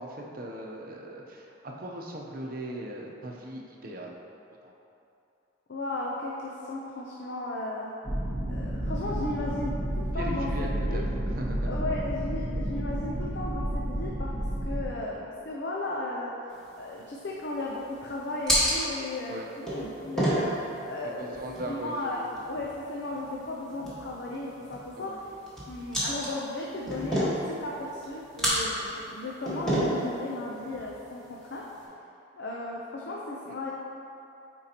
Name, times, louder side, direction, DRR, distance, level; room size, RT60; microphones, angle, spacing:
voice 1, 0.0-4.1 4.6-4.7 10.2-11.0 11.4-11.8 19.3-19.5 21.2-22.4 25.0-25.2 29.2-29.3, right 1 dB, 50° right, -1 dB, 0.7 m, -39 dB
voice 2, 5.7-7.9 8.5-11.1 11.7-22.2 22.5-25.4 25.7-31.7 32.4-33.7, left 2 dB, 65° left, -3 dB, 0.6 m, -35 dB
sound 1, 8.0-14.9, right 1 dB, 15° right, 0.9 m, -31 dB
sound 2, 16.5-31.8, equal, 5° left, 1.5 m, -33 dB
9.1 x 4.5 x 2.9 m, 2.8 s
head